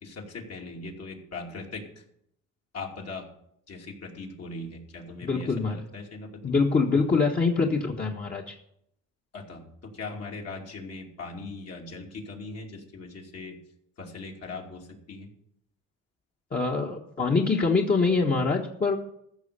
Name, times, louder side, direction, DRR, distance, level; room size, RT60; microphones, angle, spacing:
voice 1, 0.0-2.0 2.7-3.3 3.7-6.4 9.3-13.6 14.0-15.3, left 3 dB, 55° left, 0 dB, 2.8 m, -40 dB
voice 2, 5.2-5.8 6.4-8.5 16.5-19.0, left 4 dB, 30° left, 0 dB, 1.5 m, -24 dB
14.5 x 6.4 x 6.9 m, 0.74 s
cardioid pair, 90°, 30 cm